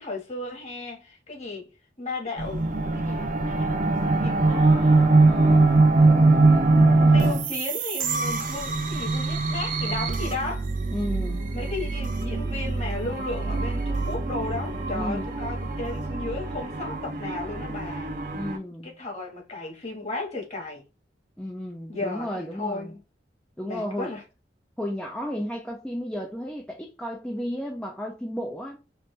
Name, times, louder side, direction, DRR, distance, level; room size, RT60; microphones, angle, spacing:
voice 1, 0.0-1.7 2.0-2.6 2.9-5.9 6.3-6.7 7.1-10.7 11.5-18.1 18.8-20.8 21.9-23.0 23.6-24.2, left 2 dB, 40° left, 1.8 m, -35 dB
sound 1, 2.4-18.6, right 3 dB, 45° right, 0.6 m, -23 dB
voice 2, 10.9-11.4 14.9-15.3 18.3-18.9 21.4-22.9 23.6-24.1 24.8-28.8, equal, 5° left, 0.5 m, -33 dB
4.3 x 2.6 x 3.3 m
head